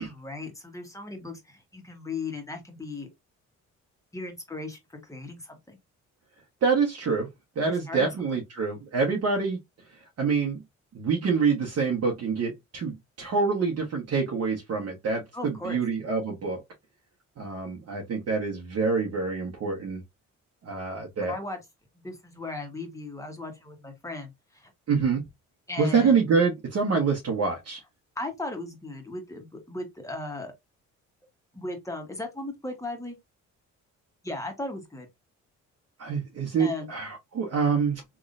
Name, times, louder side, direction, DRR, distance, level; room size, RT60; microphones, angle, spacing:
voice 1, 0.0-3.1 4.1-5.8 7.6-8.1 15.3-15.8 21.2-21.6 22.0-24.7 25.7-26.1 28.1-30.5 31.5-33.2 34.2-35.1 36.6-36.9, left 2 dB, 10° left, 1.7 m, -37 dB
voice 2, 6.6-7.3 7.6-9.6 10.2-10.6 10.9-16.6 17.4-20.0 20.6-21.3 24.9-25.2 25.8-27.8 36.0-38.0, right 5 dB, 55° right, 1.3 m, -26 dB
3.6 x 3.2 x 2.6 m
cardioid pair, 90°, 30 cm